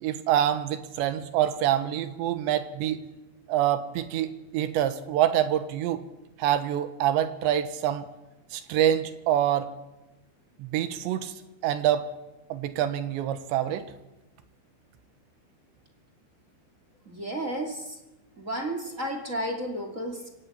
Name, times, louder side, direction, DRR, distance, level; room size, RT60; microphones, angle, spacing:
voice 1, 0.0-3.0 3.5-6.0 6.4-8.1 8.5-9.7 10.6-11.3 11.6-12.1 12.5-13.9, right 11 dB, 75° right, 11 dB, 3.5 m, -26 dB
voice 2, 17.1-18.0 18.4-20.3, right 1 dB, 25° right, 3 dB, 1.7 m, -32 dB
23.5 x 17.5 x 8.7 m, 1.0 s
omnidirectional pair, 5.4 m